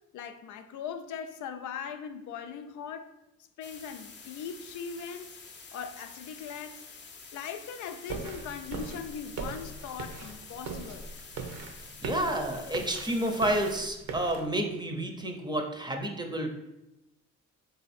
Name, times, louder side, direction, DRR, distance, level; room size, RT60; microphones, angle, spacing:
voice 1, 0.1-3.1 3.6-5.4 5.7-6.8 7.3-11.1, left 7 dB, 75° left, 0.5 m, -40 dB
sound 1, 3.6-13.8, left 5 dB, 40° left, 0.7 m, -49 dB
sound 2, 8.1-14.5, right 4 dB, 60° right, 0.7 m, -40 dB
voice 2, 12.0-16.5, right 1 dB, 15° right, 0.6 m, -30 dB
3.8 x 2.7 x 4.1 m
cardioid pair, 90°, 30 cm